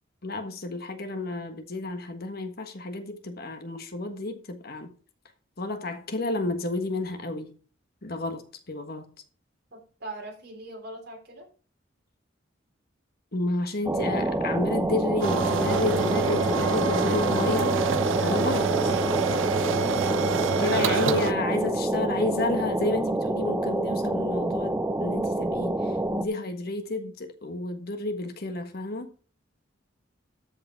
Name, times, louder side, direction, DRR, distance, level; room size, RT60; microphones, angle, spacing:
voice 1, 0.2-4.9 5.6-7.6 8.0-9.1 13.3-18.9 20.6-29.1, left 2 dB, 55° left, 1.5 m, -31 dB
voice 2, 9.7-11.5, right 1 dB, 55° right, 3.8 m, -41 dB
sound 1, 13.9-26.3, right 1 dB, 15° right, 0.7 m, -27 dB
sound 2, 15.2-21.3, right 5 dB, 85° right, 0.5 m, -27 dB
13.5 x 5.3 x 4.7 m
head